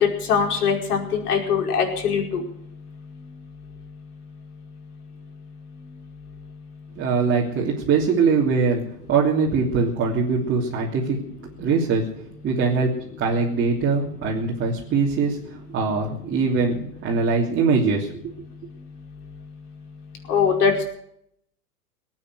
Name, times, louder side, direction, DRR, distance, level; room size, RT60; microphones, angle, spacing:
voice 1, 0.3-2.4 20.3-20.8, left 6 dB, 70° left, 2 dB, 5.1 m, -21 dB
voice 2, 6.9-8.8 9.1-11.2 11.6-12.0 12.4-12.9 13.2-18.1, right 4 dB, 25° right, -3 dB, 3.1 m, -22 dB
19.0 x 9.0 x 8.0 m, 0.70 s
hypercardioid pair, 120°, 47 cm